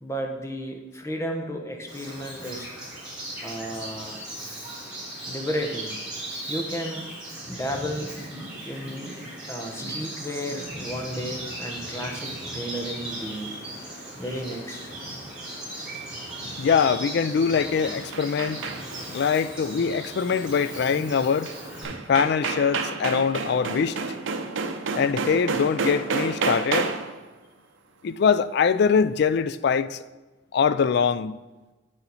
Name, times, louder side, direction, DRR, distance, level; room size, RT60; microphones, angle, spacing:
voice 1, 0.0-2.7 3.4-4.2 5.3-6.0 6.5-7.1 7.5-8.1 8.6-9.2 9.5-13.6 14.2-14.9, equal, 15° left, 0.9 m, -33 dB
Bird vocalization bird call bird song, 1.9-21.8, right 1 dB, 5° right, 3.2 m, -37 dB
voice 2, 16.6-18.6 19.1-21.5 22.1-24.0 24.9-26.9 28.0-30.0 30.5-31.4, left 6 dB, 60° left, 0.3 m, -23 dB
sound 1, 17.3-19.1 21.5-21.6 21.8-27.2, right 4 dB, 85° right, 0.7 m, -30 dB
8.1 x 7.0 x 4.1 m
head